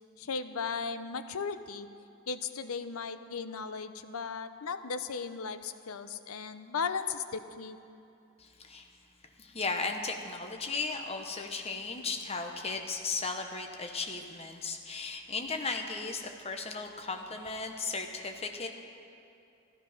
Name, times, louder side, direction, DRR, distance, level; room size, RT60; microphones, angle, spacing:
voice 1, 0.2-1.9 2.3-7.8, left 5 dB, 80° left, 10 dB, 0.7 m, -36 dB
voice 2, 8.4-8.9 9.4-18.7, left 4 dB, 25° left, 4 dB, 1.0 m, -36 dB
14.0 x 12.5 x 5.8 m, 2.6 s
head